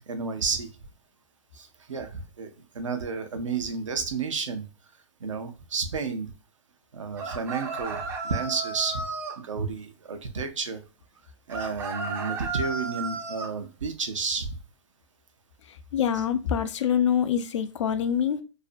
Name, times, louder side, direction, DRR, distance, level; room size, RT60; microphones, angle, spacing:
voice 1, 0.1-0.7 1.5-2.5 2.7-4.6 5.2-6.3 6.9-9.1 9.4-10.8 11.5-14.6, right 5 dB, 85° right, 0.5 m, -31 dB
sound 1, 7.2-9.4 11.5-13.5, right 4 dB, 15° right, 0.3 m, -33 dB
voice 2, 15.9-18.4, left 8 dB, 75° left, 0.4 m, -25 dB
2.5 x 2.0 x 2.5 m
hypercardioid pair, 120°, 16 cm